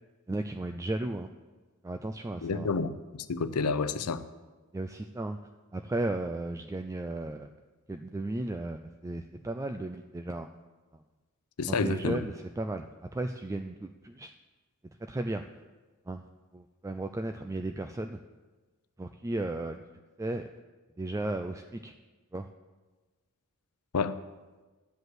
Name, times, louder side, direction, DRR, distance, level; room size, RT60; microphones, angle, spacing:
voice 1, 0.3-1.3 1.8-2.8 4.7-5.4 5.7-7.5 7.9-10.5 11.7-14.3 15.1-15.4 16.1-16.2 16.5-18.2 19.0-19.8 20.2-20.5 21.0-21.9 22.3-22.5, right 2 dB, 15° right, 6 dB, 0.3 m, -35 dB
voice 2, 2.4-4.2 11.6-12.2 23.9-24.2, left 4 dB, 85° left, 12 dB, 0.6 m, -29 dB
12.5 x 5.3 x 7.9 m, 1.3 s
head